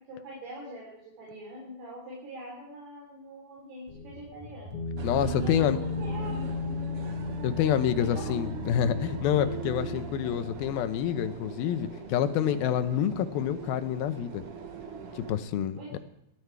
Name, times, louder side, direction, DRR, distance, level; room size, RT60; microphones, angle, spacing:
voice 1, 0.0-4.8 5.4-6.4 8.2-8.4 15.8-16.0, right 1 dB, 65° right, -3 dB, 5.3 m, -43 dB
sound 1, 3.9-11.3, left 3 dB, 55° left, 2.4 m, -36 dB
voice 2, 5.0-5.8 7.4-14.4 15.2-16.0, left 10 dB, 75° left, 10 dB, 2.4 m, -27 dB
sound 2, 5.0-15.4, right 5 dB, 85° right, 1.2 m, -40 dB
19.5 x 12.5 x 4.7 m, 0.81 s
omnidirectional pair, 5.0 m